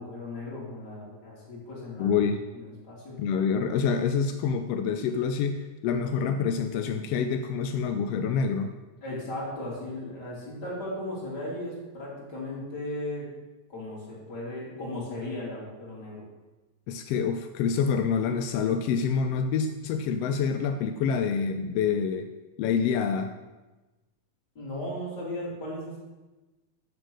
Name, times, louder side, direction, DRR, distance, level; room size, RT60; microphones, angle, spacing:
voice 1, 0.0-2.2 2.5-3.2 9.0-13.3 13.7-16.2 24.5-26.0, left 1 dB, 35° left, -5 dB, 3.3 m, -36 dB
voice 2, 2.0-2.4 3.2-8.7 16.9-22.3 22.6-23.3, left 6 dB, 80° left, 6 dB, 1.4 m, -27 dB
7.7 x 7.3 x 6.2 m, 1.1 s
omnidirectional pair, 3.3 m